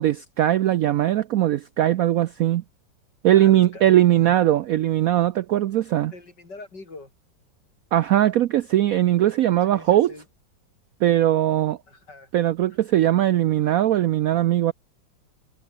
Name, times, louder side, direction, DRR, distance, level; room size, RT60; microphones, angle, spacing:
voice 1, 0.0-2.6 3.2-6.1 7.9-10.1 11.0-11.8 12.3-14.7, right 12 dB, 70° right, 0.8 m, -20 dB
voice 2, 3.3-4.3 6.1-7.1 9.6-10.3 11.9-12.3, left 3 dB, 65° left, 5.8 m, -43 dB
omnidirectional pair, 2.0 m